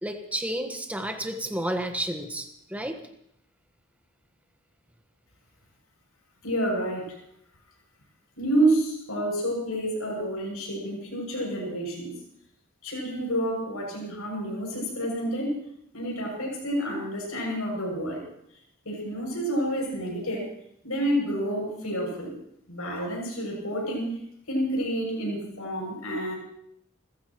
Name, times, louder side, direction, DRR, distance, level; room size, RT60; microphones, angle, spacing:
voice 1, 0.0-3.0, right 1 dB, 5° right, 4 dB, 1.3 m, -31 dB
voice 2, 6.4-7.1 8.4-12.1 12.8-15.5 15.9-18.2 18.8-20.5 20.8-22.3 22.7-24.2 24.5-26.3, right 1 dB, 90° left, -2 dB, 6.9 m, -29 dB
30.0 x 14.5 x 3.1 m, 0.73 s
head